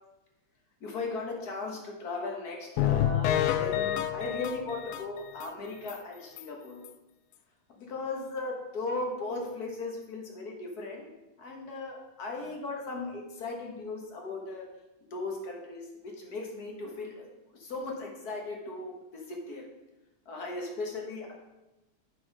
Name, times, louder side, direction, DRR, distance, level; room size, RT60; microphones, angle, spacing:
voice 1, 0.8-6.8 7.8-11.1 11.4-14.7 15.1-17.3 17.6-19.7 20.3-21.3, left 3 dB, 50° left, 0 dB, 1.8 m, -37 dB
sound 1, 2.8-5.5 5.9-6.0 6.4-6.5 6.8-6.9, left 11 dB, 80° left, 1.5 m, -28 dB
7.6 x 5.9 x 5.4 m, 0.99 s
omnidirectional pair, 2.4 m